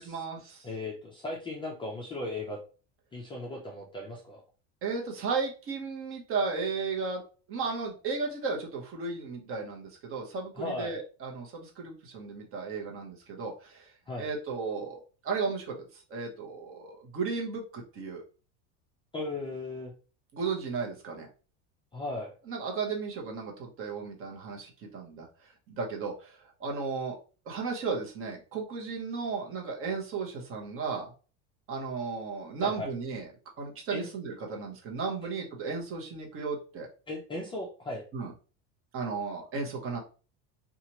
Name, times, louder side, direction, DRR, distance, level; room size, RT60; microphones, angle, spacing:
voice 1, 0.0-0.7 4.8-7.2 7.5-13.9 14.2-18.2 20.3-21.3 22.5-25.3 25.7-27.2 27.5-31.1 31.7-33.3 33.6-36.9 38.1-38.3 38.9-40.0, right 4 dB, 35° right, 0 dB, 0.9 m, -34 dB
voice 2, 0.6-2.6 3.1-4.4 10.6-11.0 14.1-14.3 19.1-19.9 21.9-22.3 32.6-32.9 33.9-34.1 37.1-38.0, left 2 dB, 15° left, -2 dB, 0.4 m, -37 dB
2.9 x 2.4 x 2.9 m, 0.36 s
cardioid pair, 140°, 35 cm